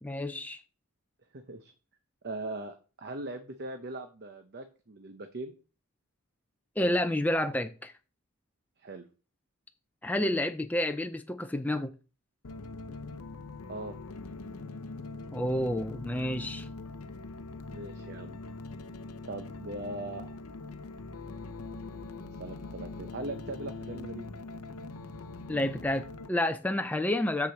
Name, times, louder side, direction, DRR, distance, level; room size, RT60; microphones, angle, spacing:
voice 1, 0.0-0.6 6.8-7.9 10.0-11.9 15.3-16.7 25.5-27.5, left 1 dB, 5° left, 0.5 m, -29 dB
voice 2, 1.3-1.7 2.2-5.5 8.8-9.0 13.7-13.9 17.7-18.4 19.2-20.4 22.4-24.3, right 2 dB, 50° right, 0.8 m, -40 dB
sound 1, 12.4-26.3, left 3 dB, 85° left, 0.7 m, -42 dB
6.7 x 5.0 x 7.0 m
head